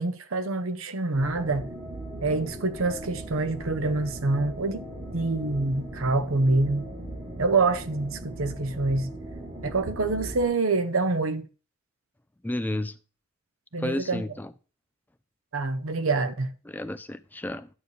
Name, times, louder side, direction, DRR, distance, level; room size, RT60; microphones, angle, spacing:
voice 1, 0.0-1.7 2.2-4.8 5.1-6.9 7.4-9.1 9.6-11.4 13.7-14.2 15.5-16.5, right 3 dB, 75° right, 0.9 m, -26 dB
sound 1, 1.1-10.5, right 1 dB, 20° right, 3.2 m, -39 dB
voice 2, 12.4-12.9 13.8-14.5 16.7-17.7, left 1 dB, 10° left, 0.4 m, -31 dB
11.0 x 6.7 x 3.2 m
head